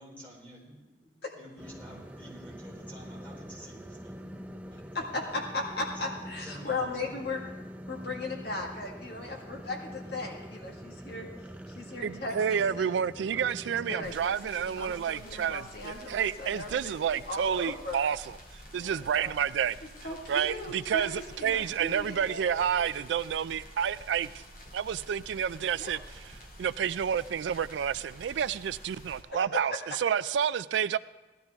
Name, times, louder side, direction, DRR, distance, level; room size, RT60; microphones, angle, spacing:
voice 1, 0.0-4.9 6.3-7.1, equal, 10° left, 3.8 m, -50 dB
sound 1, 1.6-14.2, equal, 10° right, 0.5 m, -45 dB
voice 2, 4.9-7.4 7.9-11.3 11.7-12.9 13.3-13.4 13.7-18.1 18.7-19.4 19.8-22.9 25.8-25.9 29.3-29.4, left 2 dB, 60° left, 1.8 m, -37 dB
voice 3, 12.0-18.2 18.5-19.8 20.3-24.4 24.7-26.2 26.6-31.0, right 8 dB, 80° right, 0.3 m, -30 dB
sound 2, 14.0-29.2, equal, 45° left, 2.4 m, -49 dB
17.0 x 12.5 x 3.5 m
head